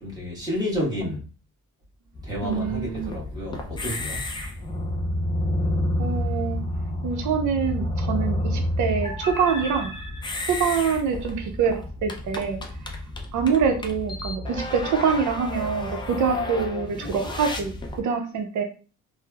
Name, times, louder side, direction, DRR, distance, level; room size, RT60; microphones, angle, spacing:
voice 1, 0.0-1.2 2.2-4.2, left 1 dB, 10° right, -5 dB, 1.1 m, -30 dB
sound 1, 2.1-18.0, left 1 dB, 15° left, 0.3 m, -30 dB
voice 2, 2.4-3.1 6.0-6.6 7.0-9.9 10.5-12.6 13.3-18.6, right 6 dB, 65° right, 5 dB, 0.6 m, -25 dB
3.1 x 2.0 x 2.2 m, 0.36 s
cardioid pair, 115°, 32 cm